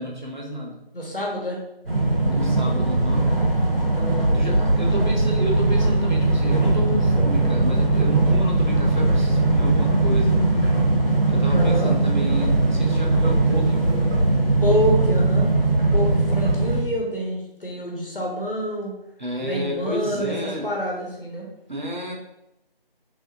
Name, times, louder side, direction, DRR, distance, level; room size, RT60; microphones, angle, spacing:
voice 1, 0.0-0.8 2.3-3.3 4.3-10.3 11.3-14.1 19.2-20.7 21.7-22.1, equal, 50° right, -1 dB, 0.8 m, -30 dB
voice 2, 0.9-1.6 3.9-4.5 11.5-11.9 14.6-15.5 15.9-18.9 19.4-21.5, equal, 65° left, -2 dB, 1.1 m, -27 dB
sound 1, 1.9-16.8, right 2 dB, 70° right, 1.2 m, -20 dB
3.5 x 3.0 x 2.8 m, 0.89 s
figure-of-eight pair, 175°, 30 cm